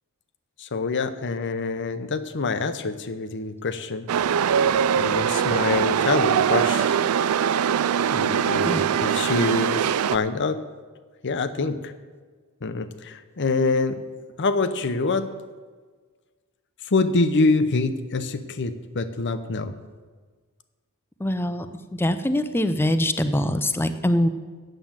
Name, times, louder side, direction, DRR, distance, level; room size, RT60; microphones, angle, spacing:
voice 1, 0.6-4.1 4.9-7.0 8.1-10.6 11.2-11.9 12.6-14.0 14.4-15.3 16.8-19.7, left 3 dB, 55° left, 11 dB, 0.7 m, -25 dB
Chatter / Subway metro underground, 4.1-10.2, right 8 dB, 70° right, 0.4 m, -22 dB
voice 2, 21.2-21.7 22.0-24.3, left 1 dB, 10° left, 10 dB, 0.5 m, -23 dB
9.2 x 7.6 x 7.3 m, 1.5 s
head